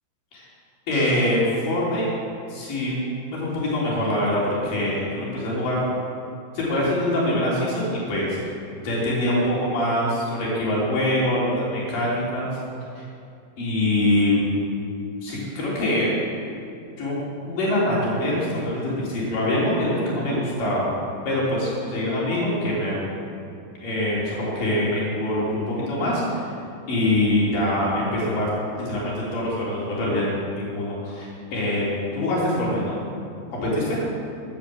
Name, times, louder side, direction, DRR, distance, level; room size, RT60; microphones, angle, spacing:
voice 1, 0.9-2.1 2.5-3.0 3.3-5.8 6.5-8.4 8.8-12.5 12.9-13.0 13.6-14.4 15.2-16.1 17.0-17.2 17.5-20.9 21.2-23.1 23.8-26.5 26.9-28.5 28.7-31.9 32.1-33.0 33.5-34.0, left 1 dB, 50° left, -6 dB, 5.0 m, -24 dB
16.0 x 8.4 x 7.6 m, 2.6 s
omnidirectional pair, 5.3 m